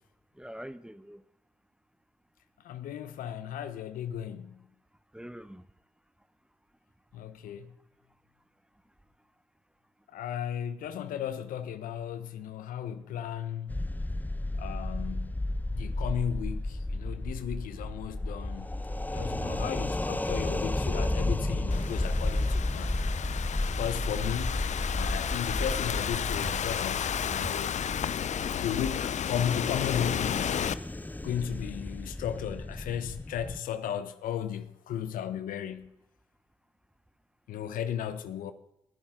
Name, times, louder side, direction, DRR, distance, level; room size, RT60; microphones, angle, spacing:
voice 1, 0.4-1.2 5.1-5.6 19.1-19.7 26.3-26.6 27.3-27.7, right 1 dB, 5° right, 1.0 m, -41 dB
voice 2, 2.6-4.6 7.1-7.7 10.1-13.8 14.6-15.4 15.7-18.7 19.1-22.9 23.3-23.4 23.7-24.6 24.9-27.8 28.6-30.7 31.2-35.9 37.5-38.5, left 9 dB, 75° left, 1.1 m, -35 dB
sound 1, 13.7-33.6, left 1 dB, 10° left, 0.8 m, -33 dB
Thunderstorm / Rain, 21.7-30.7, left 8 dB, 55° left, 0.7 m, -32 dB
20.5 x 11.5 x 3.9 m
hypercardioid pair, 40°, 14 cm